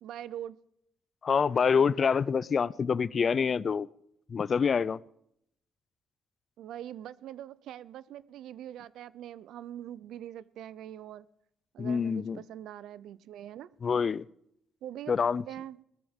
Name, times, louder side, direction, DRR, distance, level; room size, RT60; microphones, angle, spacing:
voice 1, 0.0-0.6 6.6-11.3 11.7-13.7 14.8-15.8, right 11 dB, 80° right, 0.5 m, -43 dB
voice 2, 1.2-3.9 4.3-5.0 11.8-12.4 13.8-14.3 15.1-15.4, left 6 dB, 45° left, 0.4 m, -26 dB
19.5 x 13.5 x 3.6 m
cardioid pair, 90°, 0 cm